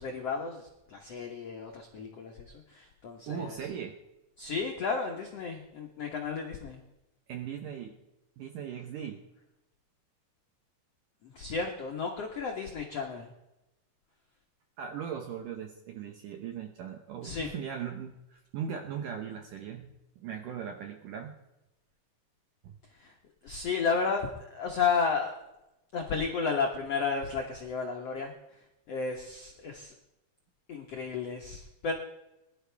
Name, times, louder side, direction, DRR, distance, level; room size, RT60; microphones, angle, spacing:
voice 1, 0.0-3.6 4.4-6.8 11.2-13.3 17.2-17.5 22.9-23.1 23.4-25.4 25.9-28.3 28.9-29.9 30.7-31.9, left 5 dB, 90° left, 1 dB, 1.3 m, -33 dB
voice 2, 3.3-4.0 7.3-7.9 8.4-9.2 14.8-19.9 20.2-21.4 22.6-22.8, right 8 dB, 75° right, 4 dB, 1.9 m, -39 dB
21.5 x 12.0 x 3.4 m, 0.95 s
omnidirectional pair, 5.0 m